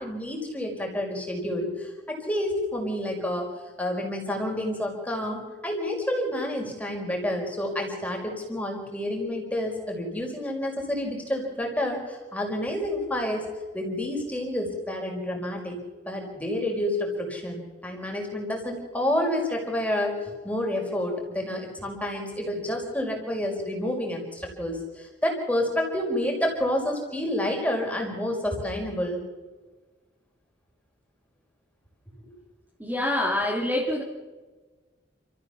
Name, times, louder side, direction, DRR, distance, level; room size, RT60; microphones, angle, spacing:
voice 1, 0.0-3.5 3.8-13.5 13.7-15.8 16.0-29.2 32.2-32.3, left 1 dB, 10° left, 1 dB, 5.2 m, -29 dB
voice 2, 32.8-34.0, left 1 dB, 10° right, -3 dB, 2.9 m, -26 dB
28.5 x 15.0 x 7.1 m, 1.3 s
head